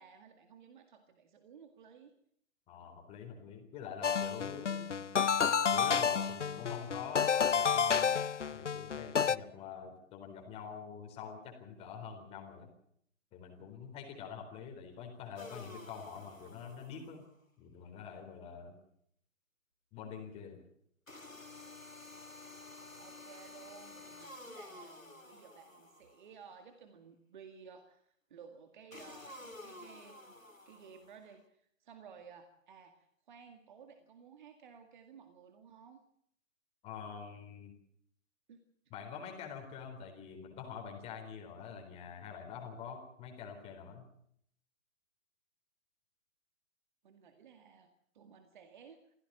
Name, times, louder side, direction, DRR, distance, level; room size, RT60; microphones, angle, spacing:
voice 1, 0.0-2.1 23.0-30.3 30.7-36.0 38.5-38.7 47.0-49.1, right 6 dB, 35° right, 7 dB, 2.1 m, -56 dB
voice 2, 2.7-5.0 5.7-8.2 8.5-12.7 13.3-17.2 17.6-18.7 19.9-20.6 36.8-37.7 38.9-44.1, left 7 dB, 15° left, 3 dB, 4.0 m, -46 dB
sound 1, 4.0-9.4, left 7 dB, 65° left, 0.8 m, -30 dB
sound 2, 15.4-17.3 21.1-26.3 28.9-31.3, left 2 dB, 85° left, 2.4 m, -51 dB
25.0 x 16.0 x 7.5 m, 0.69 s
figure-of-eight pair, 135°, 39 cm